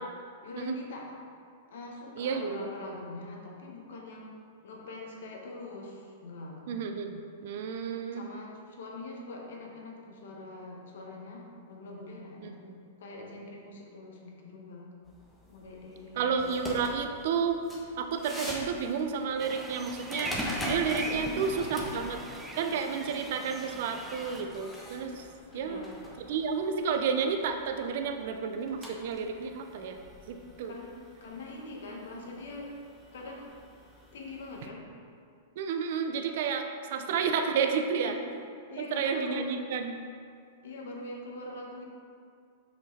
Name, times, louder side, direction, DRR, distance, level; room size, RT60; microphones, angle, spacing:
voice 1, 0.4-1.1 1.7-6.6 8.1-12.7 13.0-14.9 15.5-16.3 21.0-22.0 25.5-25.9 30.6-32.7 33.1-33.6 34.1-34.9 36.9-37.1 38.0-38.2 38.7-39.5 40.6-41.8, left 2 dB, 75° left, -1 dB, 1.4 m, -43 dB
voice 2, 2.2-2.7 6.7-8.2 12.4-12.5 16.2-17.6 18.0-22.2 22.6-25.2 25.5-25.8 26.2-30.0 30.3-30.7 35.6-38.2 38.8-40.0, right 6 dB, 60° right, 6 dB, 0.6 m, -31 dB
sound 1, 15.1-34.7, left 1 dB, 5° left, 1.3 m, -44 dB
sound 2, 19.4-24.4, right 2 dB, 10° right, 0.6 m, -40 dB
6.3 x 5.3 x 4.2 m, 2.3 s
hypercardioid pair, 125°, 0 cm